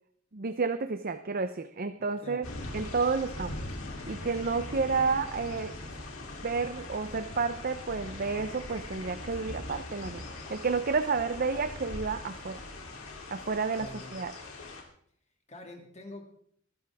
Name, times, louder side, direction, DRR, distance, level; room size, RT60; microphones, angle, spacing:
voice 1, 0.3-2.5 2.7-3.5 4.1-5.7 6.4-10.2 10.5-12.6 13.3-14.3, right 4 dB, 45° right, 9 dB, 0.7 m, -30 dB
voice 2, 2.0-2.5 13.8-14.3 15.5-16.3, left 1 dB, 35° left, 3 dB, 2.4 m, -46 dB
sound 1, 2.4-14.8, left 2 dB, 90° left, 3.3 m, -41 dB
23.5 x 12.5 x 3.5 m, 0.64 s
head